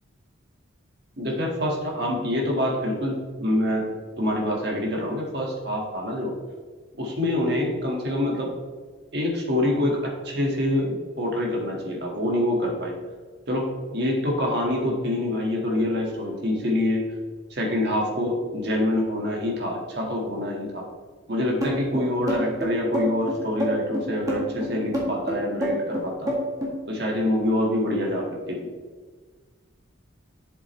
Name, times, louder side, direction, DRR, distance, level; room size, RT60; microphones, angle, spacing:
voice 1, 1.2-3.9 4.2-6.3 7.0-8.5 9.1-13.0 13.5-17.0 17.5-20.8 21.3-26.3 26.9-28.7, left 1 dB, 55° right, -1 dB, 1.7 m, -26 dB
sound 1, 21.6-26.8, equal, 15° right, 1.8 m, -27 dB
7.6 x 7.6 x 3.1 m, 1.5 s
head